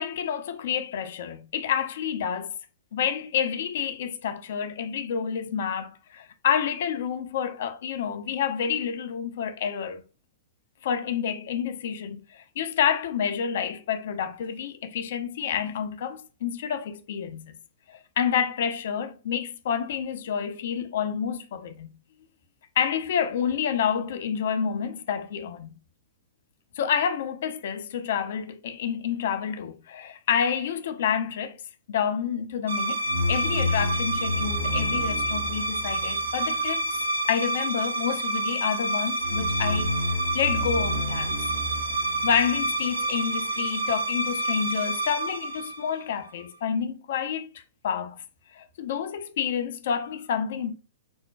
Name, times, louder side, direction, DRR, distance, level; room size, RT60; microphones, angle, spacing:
voice 1, 0.0-2.5 2.9-10.0 10.8-17.6 17.9-22.0 22.8-25.7 26.8-31.6 31.9-36.9 37.3-41.4 42.2-48.2 48.5-50.7, left 8 dB, 55° left, 0.4 m, -29 dB
sound 1, 32.7-46.3, right 1 dB, 75° right, 0.7 m, -27 dB
5.2 x 2.1 x 2.2 m
figure-of-eight pair, 105°, 0 cm